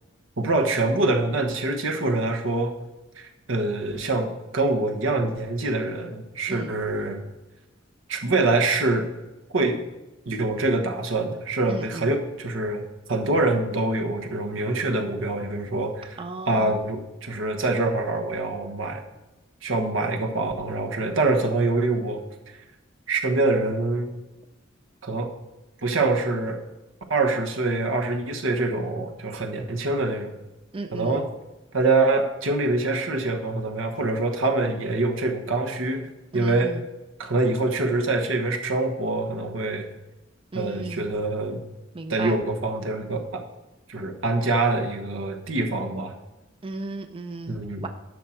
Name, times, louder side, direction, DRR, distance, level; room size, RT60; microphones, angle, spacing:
voice 1, 0.4-2.7 3.2-7.2 8.1-9.1 9.5-9.8 10.2-16.2 16.5-19.0 19.6-22.2 23.1-24.1 25.0-25.3 25.8-26.6 27.1-30.3 30.9-31.2 31.7-36.8 37.2-39.9 40.5-41.6 42.1-43.4 43.9-46.1 47.5-47.9, right 2 dB, 80° right, 3 dB, 1.3 m, -25 dB
voice 2, 11.7-12.1 16.2-16.8 30.7-31.3 36.3-36.8 40.5-41.1 41.9-42.4 46.6-47.9, right 2 dB, 30° right, 7 dB, 0.5 m, -35 dB
11.0 x 6.4 x 4.4 m, 1.0 s
head